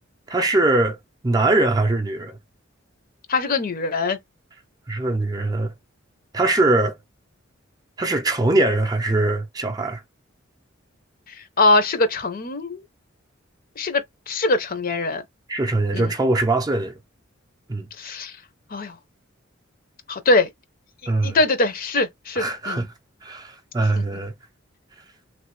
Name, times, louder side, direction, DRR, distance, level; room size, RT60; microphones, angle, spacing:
voice 1, 0.3-1.0 1.2-2.4 4.9-5.7 6.3-7.0 8.0-10.0 15.5-16.9 17.7-17.9 21.1-21.4 22.4-22.9 23.2-24.3, right 2 dB, 20° right, 0.5 m, -21 dB
voice 2, 3.3-4.2 11.3-12.8 13.8-15.2 15.9-16.1 18.0-18.3 18.7-18.9 20.1-20.5 21.2-22.9 24.0-24.1, left 2 dB, 45° left, 0.7 m, -22 dB
3.3 x 2.1 x 3.1 m
head